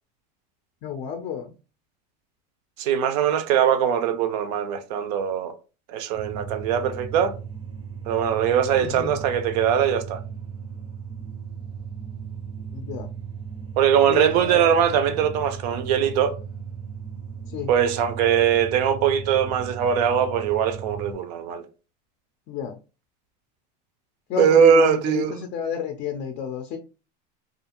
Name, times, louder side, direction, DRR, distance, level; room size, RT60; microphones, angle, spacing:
voice 1, 0.8-1.5 8.8-9.2 12.7-13.1 14.1-14.7 17.5-17.7 22.5-22.8 24.3-26.8, left 7 dB, 35° left, 0.4 m, -31 dB
voice 2, 2.8-5.5 5.9-7.3 8.1-10.2 13.8-16.4 17.7-21.6 24.4-25.3, right 8 dB, 75° right, 0.5 m, -21 dB
sound 1, 6.1-21.1, right 7 dB, 25° right, 0.5 m, -36 dB
2.4 x 2.4 x 2.8 m
supercardioid pair, 150°, 21 cm